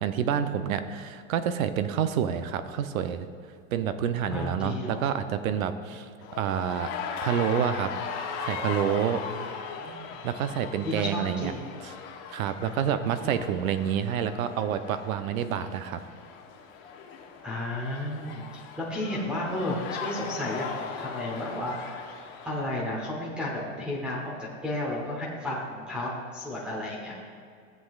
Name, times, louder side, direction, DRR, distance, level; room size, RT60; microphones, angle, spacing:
voice 1, 0.0-3.3 3.7-6.9 7.2-7.9 8.4-9.5 10.2-11.5 12.3-16.0, right 8 dB, 80° right, 11 dB, 0.7 m, -28 dB
voice 2, 4.3-5.1 9.4-9.5 9.8-10.2 10.8-11.6 12.6-13.4 17.4-22.1 22.4-27.1, left 1 dB, ahead, -7 dB, 0.9 m, -33 dB
sound 1, 6.2-22.8, left 6 dB, 45° left, 1.0 m, -39 dB
14.5 x 7.7 x 2.4 m, 2.3 s
supercardioid pair, 160°, 41 cm